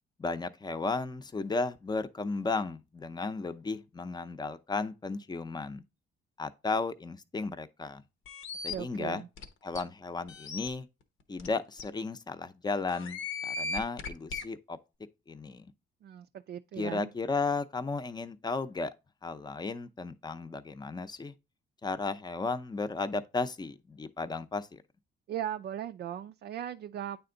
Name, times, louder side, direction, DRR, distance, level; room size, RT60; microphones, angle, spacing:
voice 1, 0.2-5.8 6.4-8.0 8.6-9.2 9.6-10.9 11.3-14.8 15.3-15.7 16.8-18.9 19.2-21.3 21.8-24.8, left 3 dB, 20° left, 0.6 m, -34 dB
sound 1, 8.3-8.7 9.4-9.5 9.7-9.8 10.3-10.7 11.4-11.5 11.8-11.9 12.9-14.4, left 4 dB, 85° left, 1.0 m, -37 dB
voice 2, 8.7-9.3 16.0-17.1 25.3-27.2, right 10 dB, 55° right, 0.4 m, -38 dB
9.0 x 3.4 x 3.8 m
cardioid pair, 90°, 20 cm